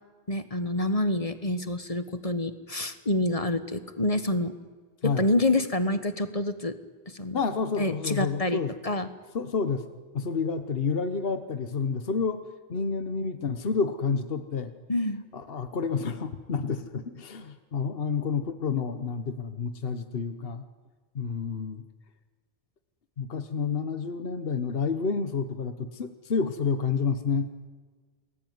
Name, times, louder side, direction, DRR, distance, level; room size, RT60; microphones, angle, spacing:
voice 1, 0.3-4.5 5.0-6.7 7.1-7.4 7.8-9.1 14.9-15.2, left 1 dB, 35° left, 11 dB, 1.5 m, -27 dB
voice 2, 7.3-8.7 9.3-9.9 10.1-12.4 12.7-14.7 15.3-20.6 21.1-21.8 23.2-27.5, left 5 dB, 65° left, 10 dB, 1.4 m, -29 dB
28.5 x 20.5 x 9.5 m, 1.5 s
omnidirectional pair, 1.0 m